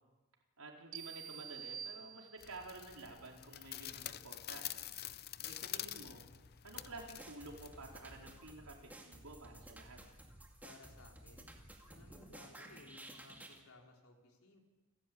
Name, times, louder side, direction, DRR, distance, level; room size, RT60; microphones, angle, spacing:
voice 1, 0.6-4.7 5.1-6.2 6.6-10.0, right 2 dB, 80° right, 0 dB, 4.5 m, -51 dB
sound 1, 0.9-2.7, right 9 dB, 60° right, 0.8 m, -48 dB
sound 2, 2.4-8.4, left 12 dB, 45° left, 0.6 m, -47 dB
voice 2, 4.8-5.2 10.6-11.5 11.9-14.6, left 2 dB, 75° left, 1 dB, 4.0 m, -60 dB
sound 3, 6.8-13.6, right 1 dB, 10° right, 2.2 m, -55 dB
29.5 x 12.5 x 8.8 m, 1.2 s
head